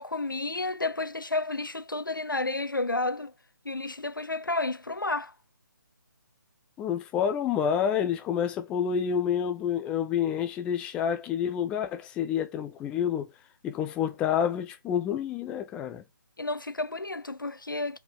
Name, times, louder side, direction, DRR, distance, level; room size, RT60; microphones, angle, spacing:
voice 1, 0.0-3.3 3.6-5.3 16.4-18.0, left 2 dB, 85° left, 1.0 m, -31 dB
voice 2, 6.8-13.3 13.6-16.0, left 8 dB, 10° left, 0.4 m, -28 dB
6.3 x 4.4 x 4.7 m
figure-of-eight pair, 150°, 11 cm